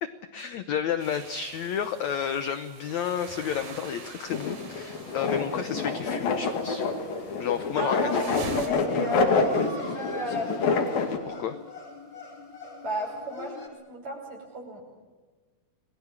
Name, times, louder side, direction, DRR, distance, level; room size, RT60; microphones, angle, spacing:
voice 1, 0.0-6.8 7.4-8.6 11.3-11.6, left 8 dB, 85° left, 10 dB, 1.6 m, -31 dB
sound 1, 1.0-8.7, right 4 dB, 75° right, 4.9 m, -45 dB
sound 2, 4.3-11.2, left 4 dB, 65° left, 4.1 m, -27 dB
voice 2, 7.8-10.9 12.8-14.8, equal, 45° right, 1 dB, 7.0 m, -35 dB
sound 3, 8.5-13.7, left 3 dB, 30° left, 4.0 m, -41 dB
29.5 x 20.5 x 7.4 m, 1.3 s
omnidirectional pair, 4.5 m